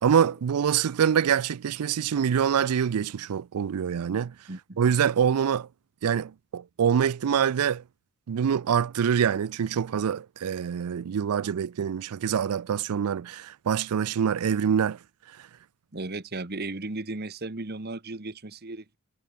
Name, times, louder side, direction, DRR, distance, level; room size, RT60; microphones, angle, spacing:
voice 1, 0.0-4.3 4.8-5.7 6.0-7.8 8.3-15.0, right 8 dB, 85° right, 0.4 m, -25 dB
voice 2, 15.9-19.0, right 2 dB, 45° right, 1.3 m, -35 dB
head